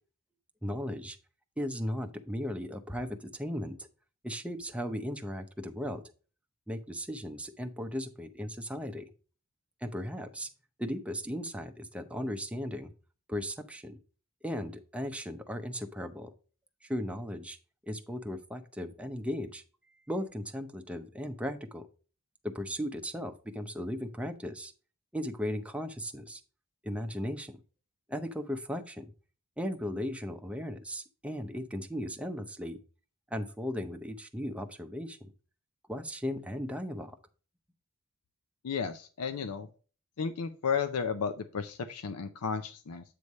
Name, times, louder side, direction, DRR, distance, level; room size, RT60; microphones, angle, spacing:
voice 1, 0.6-1.2 1.6-3.9 4.2-6.0 6.7-9.1 9.8-10.5 10.8-12.9 13.3-14.0 14.4-16.3 16.8-17.6 17.9-19.6 20.1-21.8 22.4-24.7 25.1-26.4 26.8-27.5 28.1-29.1 29.6-32.8 33.3-35.3 35.9-37.2, equal, 5° right, 6 dB, 0.6 m, -36 dB
voice 2, 38.6-39.7 40.2-43.0, left 6 dB, 90° left, 8 dB, 0.5 m, -33 dB
8.3 x 3.2 x 5.3 m, 0.37 s
head